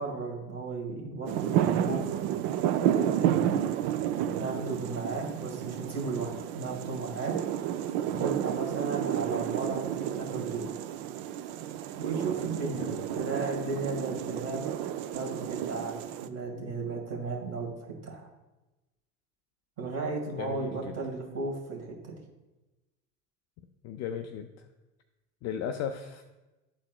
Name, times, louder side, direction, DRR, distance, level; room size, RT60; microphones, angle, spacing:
voice 1, 0.0-2.1 2.8-3.5 4.3-7.4 8.1-10.7 12.0-12.9 13.1-14.6 15.1-18.3 19.8-22.1, right 3 dB, 30° right, 0 dB, 2.1 m, -35 dB
sound 1, 1.3-16.3, right 11 dB, 50° right, 0.5 m, -31 dB
voice 2, 12.4-13.3 20.4-20.9 23.8-24.7 25.4-26.2, left 8 dB, 35° left, 6 dB, 0.4 m, -37 dB
12.0 x 4.2 x 2.3 m, 1.1 s
hypercardioid pair, 80°, 49 cm